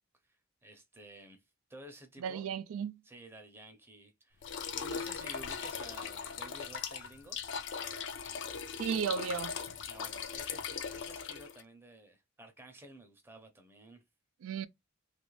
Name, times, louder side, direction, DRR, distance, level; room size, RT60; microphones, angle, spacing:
voice 1, 0.2-1.4 1.7-2.5 3.0-4.4 4.7-7.4 9.9-14.0, right 1 dB, 10° right, 0.6 m, -53 dB
voice 2, 2.2-3.0 8.8-9.5 14.4-14.7, right 7 dB, 80° right, 0.3 m, -34 dB
sound 1, 4.4-11.6, left 6 dB, 60° left, 0.4 m, -39 dB
3.0 x 2.4 x 3.1 m
head